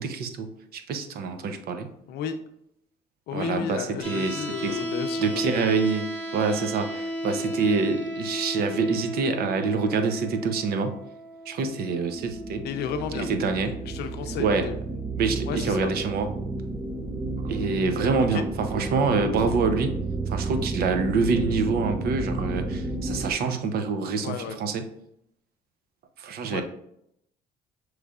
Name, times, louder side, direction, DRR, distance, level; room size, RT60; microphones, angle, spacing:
voice 1, 0.0-1.9 3.3-4.8 5.2-6.1 6.3-11.0 11.5-12.6 13.1-13.8 14.4-14.7 15.2-16.3 17.4-20.0 20.3-24.8 26.2-26.6, right 4 dB, 65° right, 7 dB, 0.6 m, -26 dB
voice 2, 3.3-5.4 12.6-13.3 13.6-14.8 15.5-15.9 18.3-18.4 24.2-24.6 26.5-26.6, left 8 dB, 75° left, 8 dB, 0.5 m, -33 dB
sound 1, 4.0-16.0, equal, 10° left, 1.7 m, -35 dB
sound 2, 12.2-23.3, right 3 dB, 15° right, 0.4 m, -32 dB
6.4 x 3.1 x 2.4 m, 0.76 s
cardioid pair, 110°, 17 cm